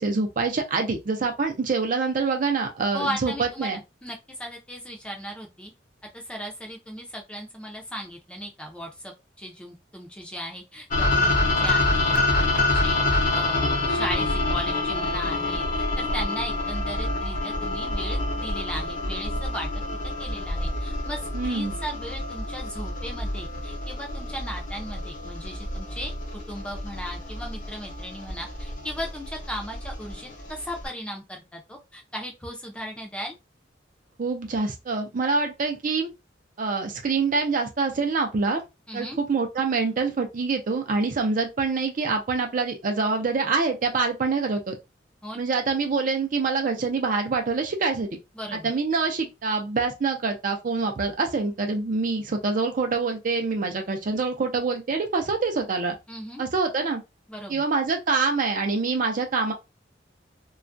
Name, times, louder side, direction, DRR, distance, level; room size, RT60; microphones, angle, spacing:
voice 1, 0.0-3.8 21.3-21.7 34.2-36.1 36.6-38.6 38.9-44.8 45.4-48.2 48.6-55.9 56.4-57.0 57.5-59.5, right 4 dB, 45° right, 0.5 m, -25 dB
voice 2, 2.9-5.7 6.1-19.7 20.2-33.3 38.9-39.2 45.2-45.4 48.3-48.7 56.1-56.4 57.3-57.6, equal, 5° left, 0.5 m, -37 dB
sound 1, 10.9-30.9, left 2 dB, 45° left, 0.7 m, -27 dB
2.3 x 2.1 x 2.5 m
head